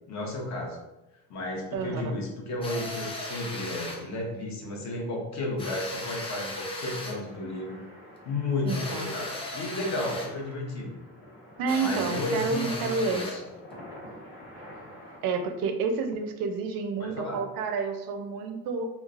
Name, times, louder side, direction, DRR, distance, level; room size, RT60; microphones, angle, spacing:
voice 1, 0.1-0.8 1.3-7.9 8.2-11.0 11.8-13.4 17.0-17.4, left 2 dB, 50° left, 0 dB, 0.7 m, -33 dB
voice 2, 1.7-2.2 8.6-9.1 11.6-13.3 15.2-18.9, right 4 dB, 70° right, 6 dB, 0.5 m, -29 dB
sound 1, 2.6-4.1 5.6-7.3 8.7-10.4 11.7-13.5, left 1 dB, 15° left, 0.5 m, -36 dB
sound 2, 7.2-15.2, equal, 80° left, 1.4 m, -47 dB
3.1 x 2.0 x 2.4 m, 0.96 s
cardioid pair, 125°, 36 cm